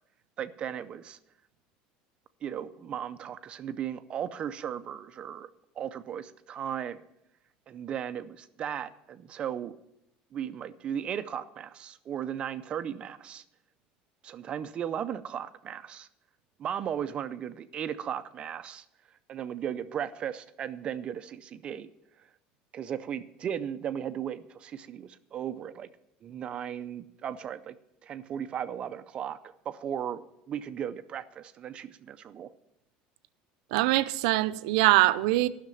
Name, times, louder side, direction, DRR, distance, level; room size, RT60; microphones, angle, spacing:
voice 1, 0.4-1.2 2.4-5.5 5.8-7.0 7.7-9.8 10.3-13.4 14.2-16.1 16.6-18.8 19.3-21.9 22.7-25.9 26.2-27.7 28.0-29.4 29.7-30.2 30.5-32.5, right 9 dB, 30° right, 0.4 m, -36 dB
voice 2, 33.7-35.5, right 17 dB, 85° right, 0.5 m, -23 dB
11.0 x 6.5 x 9.0 m
cardioid pair, 160°, 4 cm